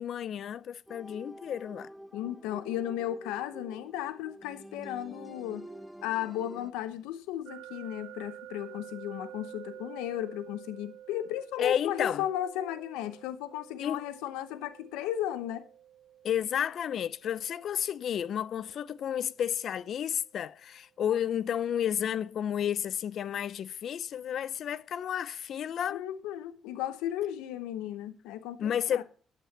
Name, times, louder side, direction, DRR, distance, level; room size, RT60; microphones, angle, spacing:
voice 1, 0.0-1.9 11.6-12.2 13.8-14.0 16.2-26.0 28.6-29.0, left 9 dB, 65° left, 0.6 m, -31 dB
sound 1, 0.9-6.7, equal, ahead, 1.0 m, -47 dB
voice 2, 2.1-5.6 6.0-15.6 25.9-29.0, left 12 dB, 85° left, 0.9 m, -35 dB
sound 2, 7.5-20.4, right 11 dB, 70° right, 0.8 m, -50 dB
11.5 x 7.7 x 6.7 m
supercardioid pair, 55°, 0 cm